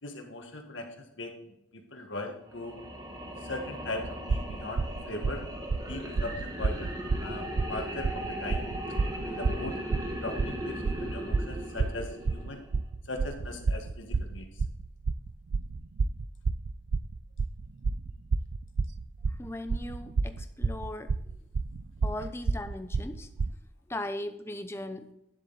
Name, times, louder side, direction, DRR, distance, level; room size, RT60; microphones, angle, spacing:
voice 1, 0.0-1.3 1.7-2.8 3.4-5.4 5.9-8.6 9.2-9.8 10.2-12.6 13.0-14.5 22.2-22.3, left 2 dB, 70° left, 4 dB, 1.6 m, -39 dB
sound 1, 2.5-12.8, equal, 20° right, 1.3 m, -38 dB
sound 2, 4.0-23.5, right 4 dB, 60° right, 0.4 m, -30 dB
voice 2, 19.4-21.1 22.0-23.3 23.9-25.1, left 1 dB, 10° left, 8 dB, 0.6 m, -38 dB
10.0 x 7.5 x 4.0 m, 0.83 s
head